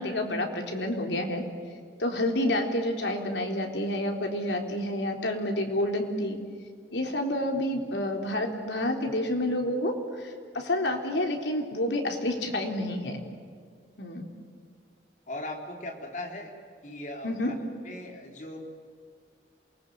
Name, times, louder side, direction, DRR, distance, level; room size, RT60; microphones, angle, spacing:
voice 1, 0.0-1.4 2.0-6.4 6.9-13.2 14.0-14.3 17.2-17.5, left 1 dB, 90° left, 3 dB, 3.9 m, -29 dB
voice 2, 15.3-16.5 16.8-18.6, left 1 dB, 45° left, 2 dB, 4.2 m, -39 dB
27.5 x 20.5 x 9.6 m, 2.1 s
head